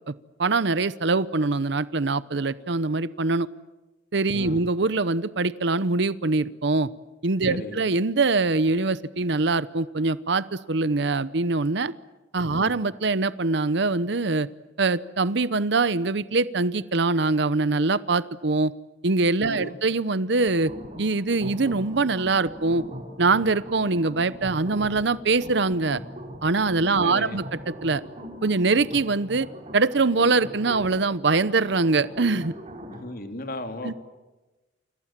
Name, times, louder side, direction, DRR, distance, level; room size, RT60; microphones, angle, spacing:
voice 1, 0.4-3.5 4.1-6.9 7.2-11.9 12.3-14.5 14.8-18.7 19.0-20.7 21.0-22.8 23.2-26.0 26.4-27.4 27.8-28.0 28.4-29.5 29.7-32.5 33.8-33.9, right 3 dB, 65° right, 16 dB, 0.9 m, -23 dB
voice 2, 4.3-4.7 7.5-7.8 12.5-12.7 19.5-19.8 27.0-27.4 32.9-33.9, left 1 dB, 50° left, 6 dB, 3.1 m, -36 dB
sound 1, 20.5-33.0, equal, 35° right, 4.9 m, -40 dB
29.0 x 27.0 x 7.5 m, 1.1 s
head